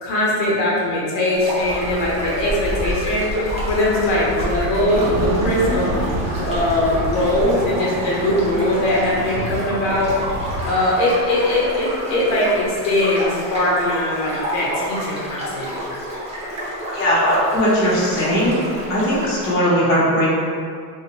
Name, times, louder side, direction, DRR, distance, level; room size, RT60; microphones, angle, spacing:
voice 1, 0.0-3.3 3.7-10.1 10.6-15.7, left 1 dB, 90° left, -5 dB, 1.0 m, -21 dB
sound 1, 1.3-19.5, equal, 15° right, 0.6 m, -30 dB
Run, 1.6-7.6, right 1 dB, 30° right, 1.0 m, -29 dB
sound 2, 4.9-10.6, right 1 dB, 60° right, 0.8 m, -29 dB
voice 2, 16.9-18.6 18.9-20.3, equal, 25° left, -9 dB, 0.9 m, -18 dB
2.7 x 2.4 x 2.9 m, 2.1 s
cardioid pair, 135°, 48 cm